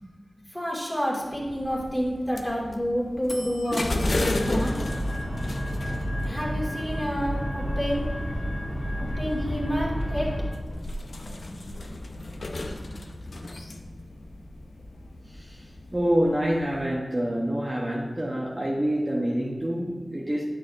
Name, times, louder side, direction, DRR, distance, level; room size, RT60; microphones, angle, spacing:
voice 1, 0.0-4.8 6.2-8.1 9.0-10.6 11.2-11.8, equal, 10° left, -4 dB, 2.1 m, -30 dB
sound 1, 1.5-16.9, left 1 dB, 65° left, 0.6 m, -35 dB
sound 2, 4.3-10.5, equal, 25° left, 2.1 m, -30 dB
voice 2, 15.9-20.4, equal, 25° right, -3 dB, 1.0 m, -26 dB
9.4 x 6.5 x 2.6 m, 1.3 s
wide cardioid pair, 75°, 0 cm